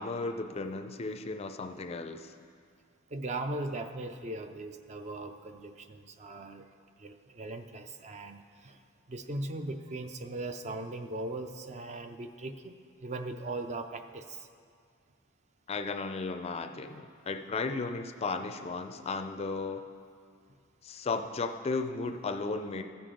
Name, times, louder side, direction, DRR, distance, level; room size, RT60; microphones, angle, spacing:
voice 1, 0.0-2.3 15.7-19.9 20.8-22.8, left 3 dB, 30° left, 7 dB, 0.4 m, -35 dB
voice 2, 3.1-6.7 7.0-8.8 9.1-14.5, right 2 dB, 35° right, 7 dB, 0.4 m, -39 dB
14.5 x 6.8 x 3.7 m, 2.2 s
head